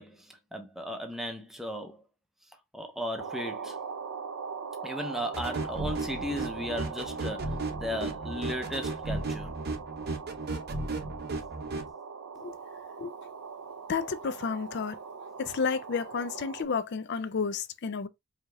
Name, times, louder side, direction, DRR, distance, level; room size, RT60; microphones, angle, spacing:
voice 1, 0.0-2.0 2.7-3.8 4.8-9.5, equal, ahead, 0.6 m, -36 dB
sound 1, 3.2-16.6, right 5 dB, 85° right, 0.5 m, -41 dB
sound 2, 5.3-11.9, right 2 dB, 50° right, 0.7 m, -35 dB
voice 2, 13.9-15.0 15.4-18.1, left 5 dB, 50° left, 0.4 m, -31 dB
4.9 x 2.8 x 2.2 m
head